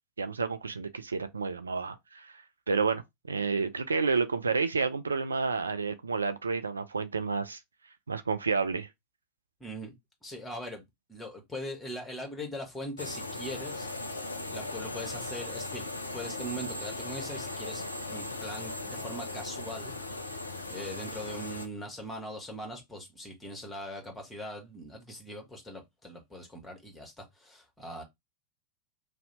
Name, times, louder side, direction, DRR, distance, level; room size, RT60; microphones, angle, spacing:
voice 1, 0.2-2.3 2.7-7.6 8.1-8.9, right 4 dB, 75° right, 0.3 m, -30 dB
voice 2, 9.6-9.9 10.2-10.8 11.1-13.9 14.5-15.9 16.1-19.9 20.7-28.0, equal, 5° left, 1.0 m, -41 dB
sound 1, 13.0-21.7, left 2 dB, 80° left, 0.4 m, -38 dB
2.7 x 2.0 x 4.0 m
figure-of-eight pair, 90°, 0 cm